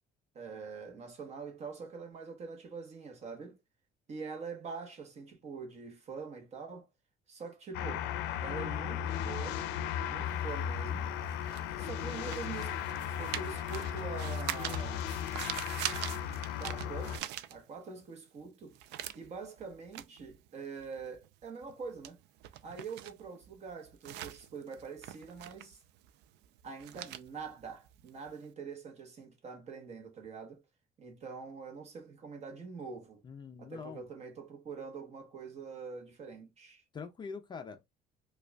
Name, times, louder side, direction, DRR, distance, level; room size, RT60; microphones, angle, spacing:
voice 1, 0.3-3.6 4.1-6.9 7.3-8.1 8.4-9.6 10.1-11.1 11.8-12.9 13.2-15.1 16.6-18.8 19.1-22.2 22.6-25.8 26.6-30.6 31.0-33.2 33.6-36.8, right 5 dB, 40° right, 1.0 m, -44 dB
sound 1, 7.7-17.2, left 9 dB, 85° left, 0.5 m, -36 dB
sound 2, 10.3-18.0 18.4-28.4, right 12 dB, 80° right, 0.4 m, -44 dB
voice 2, 33.2-34.0 36.9-37.8, left 5 dB, 25° left, 0.4 m, -44 dB
4.8 x 2.3 x 2.2 m
cardioid pair, 140°, 18 cm